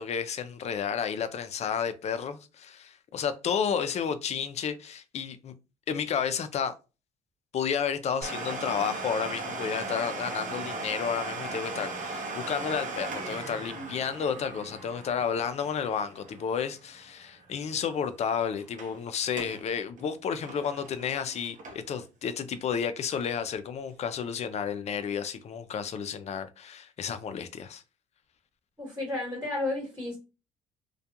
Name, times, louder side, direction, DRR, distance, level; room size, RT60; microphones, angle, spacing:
voice 1, 0.0-5.5 5.9-6.7 7.5-27.8, left 7 dB, 40° left, 0.4 m, -31 dB
Domestic sounds home sounds, 8.2-17.7 17.9-18.0 18.6-18.9 19.3-19.6 20.0-22.0 22.5-22.6 23.3-23.4, right 3 dB, 45° right, 0.7 m, -38 dB
voice 2, 28.8-30.2, left 2 dB, 10° right, 1.3 m, -32 dB
2.3 x 2.2 x 2.8 m
cardioid pair, 110°, 17 cm